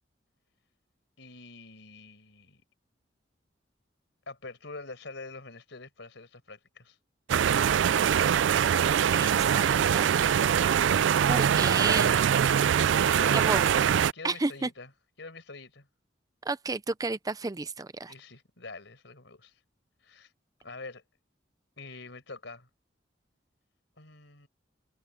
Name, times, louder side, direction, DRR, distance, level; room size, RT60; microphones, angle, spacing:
voice 1, 1.2-2.6 4.3-7.0 12.9-13.6 14.1-14.9 15.2-15.9 18.1-19.5 20.0-20.3 20.6-21.0 21.8-22.7 24.0-24.5, left 3 dB, 70° left, 5.3 m, -45 dB
sound 1, 7.3-14.1, right 8 dB, 75° right, 0.4 m, -23 dB
voice 2, 9.1-10.1 11.2-12.3 12.9-13.9 14.2-14.7 16.4-18.1, right 3 dB, 20° right, 0.5 m, -32 dB
head